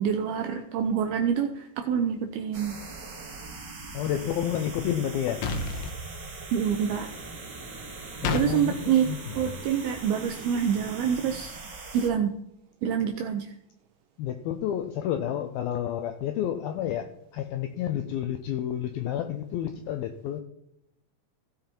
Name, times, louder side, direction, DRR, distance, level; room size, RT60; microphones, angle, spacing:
voice 1, 0.0-2.7 6.5-7.1 8.2-9.1 9.3-11.6 11.9-12.3 12.8-13.5, right 8 dB, 80° right, 5 dB, 2.3 m, -26 dB
sound 1, 2.5-12.1, right 3 dB, 55° right, 1.2 m, -41 dB
voice 2, 3.9-5.4 8.2-9.2 9.5-9.6 14.2-20.4, left 10 dB, 85° left, 7 dB, 2.1 m, -30 dB
sound 2, 5.4-6.0 8.2-8.5, left 4 dB, 70° left, 2.4 m, -29 dB
16.0 x 5.8 x 4.4 m, 0.80 s
omnidirectional pair, 5.1 m